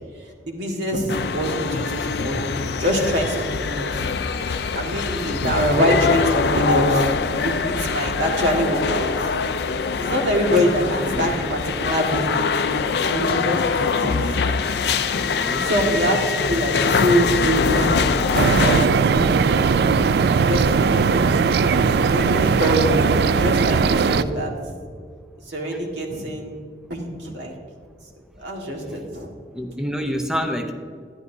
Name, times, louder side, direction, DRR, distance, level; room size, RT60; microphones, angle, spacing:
voice 1, 0.4-4.0 4.7-9.3 10.0-12.8 13.0-14.4 14.9-15.1 15.6-18.1 18.6-19.5 20.5-24.7 25.5-26.6 26.9-27.5 28.4-29.3, equal, 90° right, 0 dB, 1.7 m, -24 dB
sound 1, 1.1-18.9, left 5 dB, 70° left, 0.4 m, -23 dB
voice 2, 5.2-5.5 15.3-15.7 25.7-25.8 29.5-30.7, equal, 5° right, 4 dB, 0.6 m, -28 dB
sound 2, 18.3-24.2, right 5 dB, 65° right, 0.3 m, -18 dB
11.0 x 10.5 x 2.7 m, 2.1 s
head